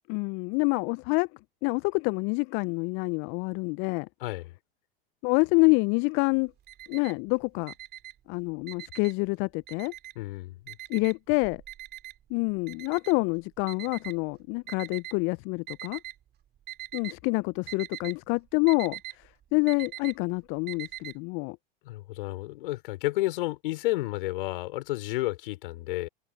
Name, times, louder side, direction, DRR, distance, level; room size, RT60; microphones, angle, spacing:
voice 1, 0.1-1.3 1.6-4.1 5.2-6.5 6.9-7.7 8.3-9.9 10.9-11.6 12.3-16.0 16.9-19.0 19.5-21.6, left 31 dB, 40° left, 0.5 m, -27 dB
voice 2, 4.2-4.5 10.1-10.8 21.8-26.1, left 18 dB, 60° left, 4.8 m, -31 dB
Alarm, 6.3-7.3 7.6-9.3 9.7-10.3 10.7-15.1 15.7-16.3 16.6-17.2 17.5-21.1, right 14 dB, 35° right, 3.0 m, -42 dB
hypercardioid pair, 90°, 30 cm